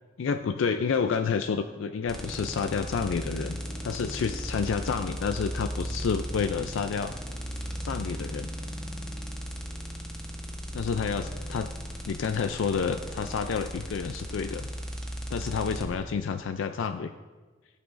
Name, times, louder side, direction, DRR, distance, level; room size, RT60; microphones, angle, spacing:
voice 1, 0.2-7.1 7.8-8.5 10.7-11.7 12.1-14.7 15.3-17.1, left 6 dB, 90° left, 8 dB, 0.4 m, -29 dB
sound 1, 2.1-15.8, equal, 5° left, 1.0 m, -36 dB
15.0 x 7.0 x 2.5 m, 1.3 s
head